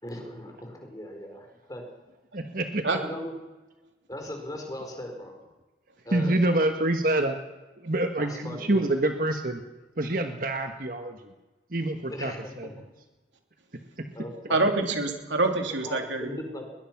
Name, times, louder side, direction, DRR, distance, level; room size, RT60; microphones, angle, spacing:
voice 1, 0.0-1.8 3.0-3.3 4.1-5.4 6.0-6.4 8.2-9.0 12.1-12.8 14.1-14.7 15.8-16.7, left 1 dB, 20° left, 3 dB, 4.4 m, -39 dB
voice 2, 2.3-2.8 6.1-7.3 7.8-9.6 10.0-11.2 11.7-12.3 12.6-12.7, right 1 dB, 50° right, 6 dB, 1.4 m, -26 dB
voice 3, 14.5-16.4, right 2 dB, 85° right, 4 dB, 3.1 m, -26 dB
21.5 x 20.5 x 6.0 m, 1.1 s
head